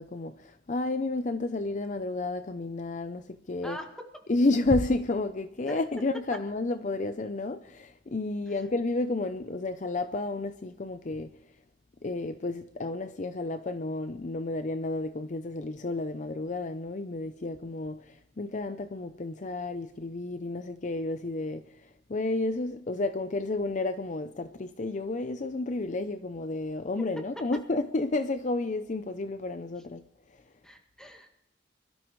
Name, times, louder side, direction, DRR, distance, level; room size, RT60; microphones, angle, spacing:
voice 1, 0.0-3.8 4.3-11.3 12.0-30.0 30.3-30.4, left 2 dB, 40° left, 0.6 m, -31 dB
voice 2, 30.6-31.4, left 1 dB, 5° left, 1.9 m, -42 dB
23.0 x 13.5 x 3.1 m
head